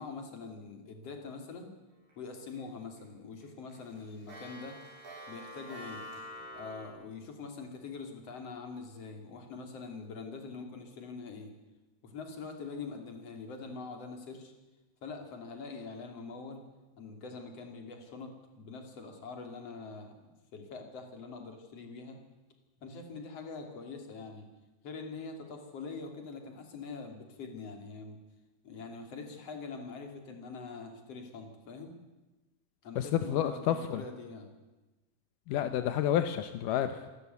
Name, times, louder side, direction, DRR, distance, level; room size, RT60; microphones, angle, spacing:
voice 1, 0.0-1.7 2.1-4.8 5.3-6.0 6.5-11.5 12.0-14.5 15.0-16.6 17.0-20.1 20.5-22.2 22.8-24.5 24.8-28.2 28.6-32.0 32.8-34.5, left 4 dB, 40° left, 5 dB, 3.5 m, -44 dB
Clock, 2.1-2.6 3.0-3.1 3.4-6.9, equal, 70° right, 9.7 m, -46 dB
voice 2, 33.0-34.0 35.5-37.0, left 10 dB, 75° left, 9 dB, 2.0 m, -29 dB
27.5 x 13.0 x 9.5 m, 1.1 s
omnidirectional pair, 4.8 m